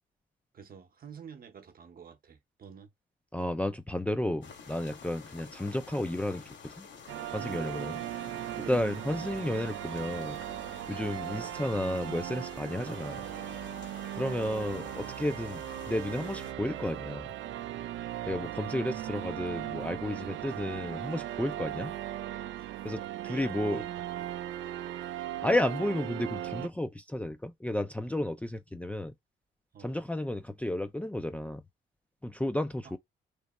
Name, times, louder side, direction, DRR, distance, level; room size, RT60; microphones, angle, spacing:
voice 1, 0.5-2.9 7.5-7.8 8.6-8.9 10.9-11.1 14.3-14.8 22.5-22.7 23.2-24.3 29.7-30.0 32.8-33.0, right 6 dB, 45° right, 0.9 m, -48 dB
voice 2, 3.3-6.9 7.3-7.9 8.7-10.4 10.9-13.2 14.1-15.6 15.9-17.3 18.3-21.9 22.8-23.0 23.3-23.8 25.4-29.1 29.8-31.6 32.2-33.0, left 1 dB, 5° left, 0.5 m, -32 dB
sound 1, 4.4-16.5, left 6 dB, 65° left, 1.8 m, -50 dB
sound 2, 7.1-26.7, right 13 dB, 70° right, 0.4 m, -38 dB
3.2 x 2.8 x 4.1 m
cardioid pair, 90°, 20 cm